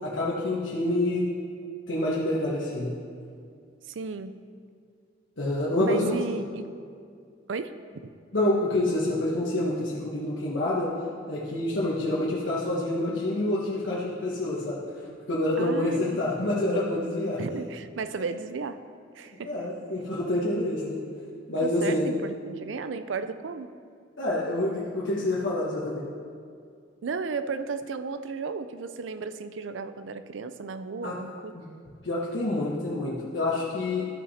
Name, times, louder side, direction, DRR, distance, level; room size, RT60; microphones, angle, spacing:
voice 1, 0.0-1.3 1.9-2.9 5.4-6.1 8.3-10.9 11.3-14.8 15.3-17.4 19.4-21.0 21.5-22.1 24.2-26.0 31.0-31.1 31.5-31.7 32.0-34.0, left 1 dB, 85° left, -7 dB, 1.3 m, -27 dB
voice 2, 3.9-4.4 5.8-6.8 7.5-7.7 15.6-16.3 17.4-18.8 19.2-19.5 21.6-23.7 27.0-31.5, right 4 dB, 85° right, 11 dB, 0.5 m, -34 dB
13.5 x 5.8 x 4.2 m, 2.3 s
head